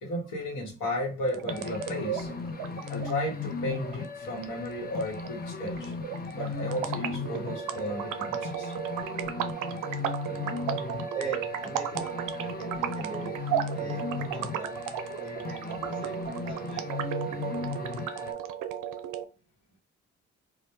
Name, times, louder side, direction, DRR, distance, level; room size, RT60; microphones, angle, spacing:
voice 1, 0.0-2.3 2.9-5.9 6.3-8.7 14.4-14.5 15.8-15.9, left 1 dB, 65° left, 1.1 m, -34 dB
sound 1, 1.2-19.2, right 10 dB, 70° right, 0.5 m, -35 dB
sound 2, 1.5-18.3, left 4 dB, 30° left, 0.5 m, -37 dB
voice 2, 11.1-14.7 15.2-16.8, right 4 dB, 15° right, 0.6 m, -41 dB
2.2 x 2.1 x 2.9 m
hypercardioid pair, 45°, 33 cm